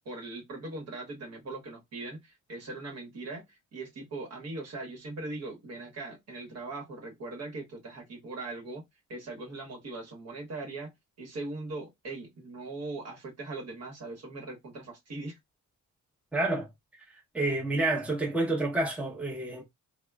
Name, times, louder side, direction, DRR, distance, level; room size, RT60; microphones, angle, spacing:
voice 1, 0.0-8.8 9.1-10.9 11.2-15.4, right 2 dB, 50° right, 1.1 m, -40 dB
voice 2, 16.3-16.7 17.3-19.6, right 2 dB, 5° right, 0.8 m, -28 dB
3.5 x 2.1 x 2.3 m
cardioid pair, 120°, 32 cm